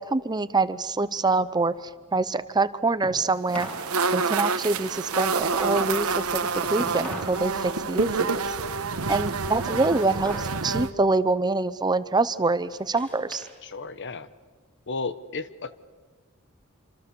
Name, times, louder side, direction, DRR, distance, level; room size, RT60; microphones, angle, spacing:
voice 1, 0.0-3.7 4.1-8.6 9.1-13.5, right 3 dB, 20° right, 14 dB, 0.7 m, -25 dB
sound 1, 0.8-3.9 4.2-7.4 7.8-10.7 11.0-11.4 11.9-13.6 14.0-15.1, equal, 5° left, 3.1 m, -42 dB
sound 2, 3.5-10.9, right 4 dB, 75° right, 1.2 m, -28 dB
voice 2, 13.6-14.3 14.9-15.7, left 3 dB, 55° left, 13 dB, 1.0 m, -33 dB
27.0 x 25.5 x 6.9 m, 1.4 s
head